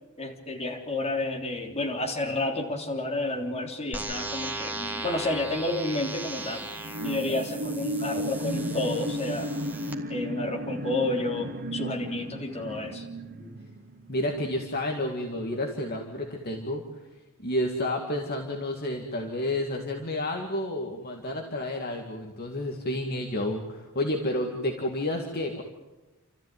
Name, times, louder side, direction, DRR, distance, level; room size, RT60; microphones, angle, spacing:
voice 1, 0.2-6.7 7.0-9.5 10.1-13.1 13.4-13.6, left 2 dB, 30° left, 2 dB, 3.6 m, -30 dB
sound 1, 3.9-9.9, right 2 dB, 10° right, 2.1 m, -37 dB
sound 2, 6.7-14.5 15.0-15.1, equal, 45° right, 1.2 m, -34 dB
voice 2, 14.1-16.8 17.4-25.6, left 1 dB, 45° left, 2 dB, 2.1 m, -30 dB
30.0 x 14.0 x 9.4 m, 1.1 s
head